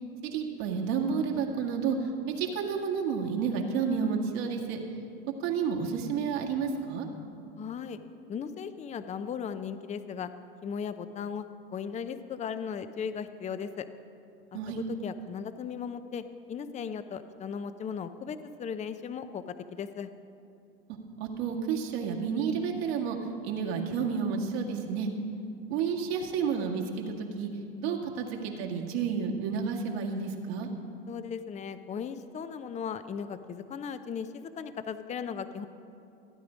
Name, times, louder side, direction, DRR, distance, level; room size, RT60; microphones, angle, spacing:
voice 1, 0.2-2.0 2.3-4.8 5.4-7.1 14.5-14.8 21.2-23.2 23.4-25.1 25.7-27.5 27.8-30.7, right 6 dB, 75° right, 0 dB, 1.9 m, -30 dB
voice 2, 7.6-8.0 8.3-10.3 10.6-13.9 14.7-20.1 31.1-35.7, left 7 dB, 20° left, 11 dB, 0.6 m, -37 dB
15.5 x 9.5 x 5.1 m, 2.6 s
hypercardioid pair, 95°, 31 cm